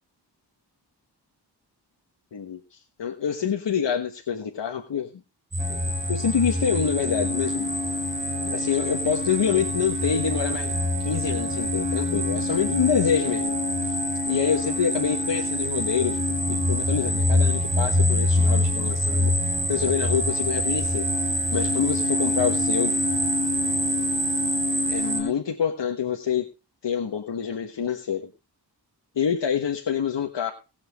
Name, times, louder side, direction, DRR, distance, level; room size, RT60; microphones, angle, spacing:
voice 1, 2.3-5.1 5.7-5.8 6.1-7.7 8.4-10.7 11.0-13.6 13.8-13.9 14.3-19.3 19.7-21.0 21.5-23.0 24.9-26.5 26.8-28.3 29.1-30.5, left 7 dB, 85° left, 3 dB, 1.4 m, -26 dB
sound 1, 5.5-25.2, equal, 30° right, 4.1 m, -26 dB
sound 2, 5.6-25.3, left 4 dB, 20° left, 1.2 m, -31 dB
20.0 x 7.4 x 3.5 m, 0.30 s
wide cardioid pair, 115°, 42 cm